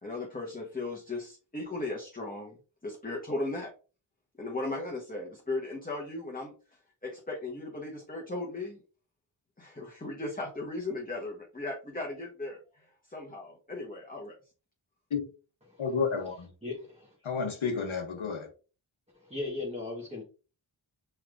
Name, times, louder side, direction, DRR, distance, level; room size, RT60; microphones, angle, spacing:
voice 1, 0.0-3.7 4.4-6.5 7.0-8.8 9.6-14.4, left 2 dB, 15° left, 1.1 m, -37 dB
voice 2, 15.8-16.5 17.2-18.5, left 5 dB, 70° left, 1.0 m, -31 dB
voice 3, 16.6-17.1 19.3-20.2, left 3 dB, 15° right, 1.3 m, -37 dB
5.5 x 3.3 x 2.5 m
wide cardioid pair, 65°, 49 cm